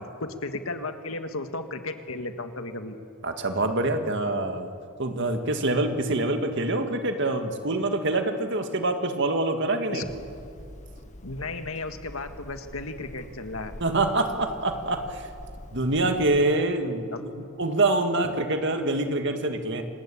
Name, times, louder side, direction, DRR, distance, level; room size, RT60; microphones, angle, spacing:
voice 1, 0.0-3.0 9.9-10.1 11.2-13.7 17.1-17.3 18.2-18.3, left 2 dB, 80° left, 7 dB, 1.8 m, -34 dB
voice 2, 3.2-4.7 5.0-10.1 13.8-15.3 15.7-19.8, right 2 dB, 60° right, 6 dB, 2.0 m, -25 dB
Hammer, 10.0-16.4, left 1 dB, 35° left, 1.6 m, -45 dB
27.5 x 19.5 x 8.7 m, 2.5 s
head